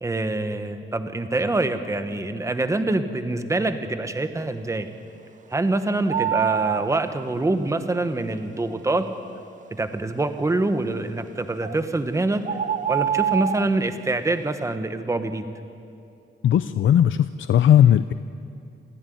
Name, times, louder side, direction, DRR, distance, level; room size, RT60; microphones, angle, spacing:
voice 1, 0.0-4.9 5.5-9.1 9.7-12.4 12.9-15.4, right 2 dB, 15° right, 9 dB, 1.1 m, -25 dB
sound 1, 6.1-7.0 11.6-11.8 12.4-13.7, right 9 dB, 40° right, 0.5 m, -25 dB
voice 2, 16.4-18.1, left 10 dB, 85° left, 13 dB, 0.5 m, -17 dB
27.5 x 15.5 x 9.3 m, 2.5 s
wide cardioid pair, 180°, 20 cm